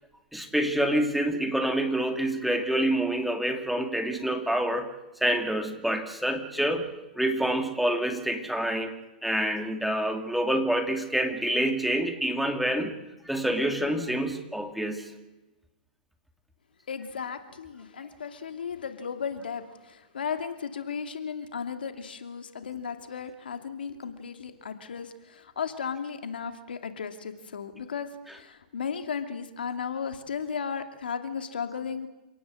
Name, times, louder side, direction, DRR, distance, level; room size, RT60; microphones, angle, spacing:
voice 1, 0.3-6.9 7.1-8.9 9.2-12.9 13.2-15.1, right 1 dB, ahead, 5 dB, 2.6 m, -27 dB
voice 2, 16.9-32.1, left 6 dB, 80° left, 7 dB, 2.7 m, -35 dB
27.5 x 18.0 x 7.8 m, 1.0 s
hypercardioid pair, 120°, 5 cm